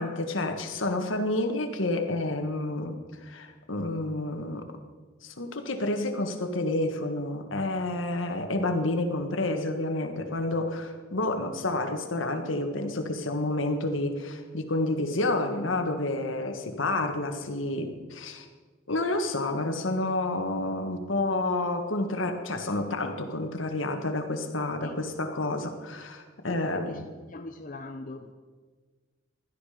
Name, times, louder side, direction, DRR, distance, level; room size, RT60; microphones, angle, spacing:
voice 1, 0.0-3.0 3.2-4.6 5.2-18.5 18.9-27.1, left 2 dB, 80° left, 6 dB, 1.7 m, -29 dB
voice 2, 26.5-28.3, left 2 dB, 40° left, 5 dB, 0.7 m, -41 dB
16.5 x 12.5 x 5.1 m, 1.4 s
head